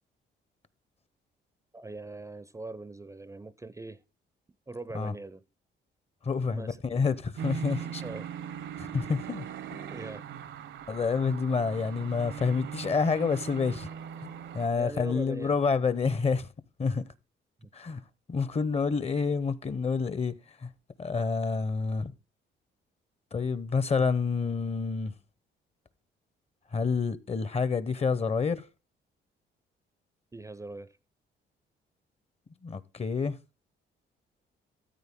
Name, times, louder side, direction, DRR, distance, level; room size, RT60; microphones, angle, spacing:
voice 1, 1.7-4.0 4.7-5.4 6.5-6.8 7.8-8.3 9.9-10.2 14.8-15.6 17.6-17.7 30.3-31.0, right 2 dB, 15° right, 0.5 m, -41 dB
voice 2, 6.2-8.0 8.8-9.5 9.7-9.9 10.9-13.9 14.2-16.5 16.8-17.1 17.7-18.0 18.3-20.7 21.0-22.1 23.3-25.1 26.7-28.7 32.6-33.4, left 5 dB, 30° left, 0.7 m, -28 dB
sound 1, 7.4-14.7, right 8 dB, 70° right, 0.9 m, -40 dB
14.0 x 7.9 x 3.6 m
cardioid pair, 90°, 20 cm